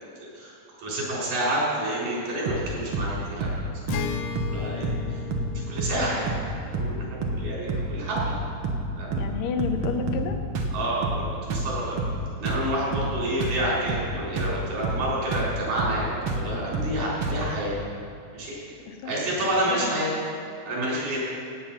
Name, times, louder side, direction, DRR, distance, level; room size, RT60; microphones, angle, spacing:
voice 1, 0.8-3.5 4.4-5.2 5.7-6.3 6.7-8.2 9.0-9.2 10.7-12.0 12.4-17.7 18.3-18.6 19.1-20.1 20.7-21.2, right 1 dB, 90° right, -6 dB, 5.5 m, -29 dB
sound 1, 2.5-2.7 2.9-3.1 3.4-3.6 3.9-4.1 4.4-4.6 4.8-5.1 5.3-5.5 5.8-6.0 6.3-6.5 6.7-7.0 7.2-7.4 7.7-7.9 8.2-8.4 8.6-8.9 9.1-9.3 9.6-10.3 10.5-10.8 11.0-11.2 11.5-11.7 12.0-12.2 12.5-12.7 12.9-13.1 13.4-13.6 13.9-14.1 14.4-14.6 14.8-15.1 15.3-15.5 15.8-16.0 16.3-16.5 16.7-17.0 17.2-17.4, right 3 dB, 60° right, 1.8 m, -28 dB
Acoustic guitar, 3.9-9.4, left 7 dB, 75° left, 1.5 m, -37 dB
voice 2, 9.2-10.4 18.9-19.1 19.7-20.0, left 6 dB, 90° left, 6 dB, 2.6 m, -30 dB
16.5 x 8.7 x 5.7 m, 2.5 s
omnidirectional pair, 3.6 m